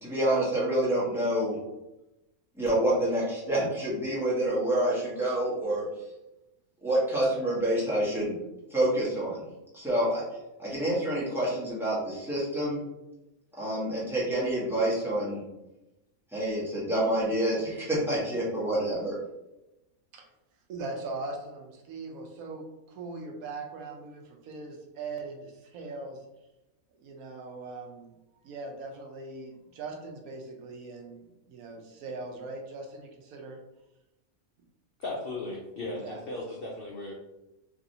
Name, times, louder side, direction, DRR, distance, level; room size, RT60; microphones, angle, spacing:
voice 1, 0.0-1.6 2.6-5.9 6.8-8.4 8.7-9.4 9.7-10.2 10.6-12.8 13.6-15.4 16.3-19.1, right 1 dB, ahead, -8 dB, 0.9 m, -27 dB
voice 2, 20.7-26.2 27.0-28.1 28.4-33.6 36.0-36.2, right 3 dB, 75° right, 2 dB, 1.0 m, -40 dB
voice 3, 35.0-37.1, left 2 dB, 75° left, -2 dB, 0.5 m, -36 dB
3.2 x 2.6 x 2.7 m, 0.96 s
omnidirectional pair, 1.5 m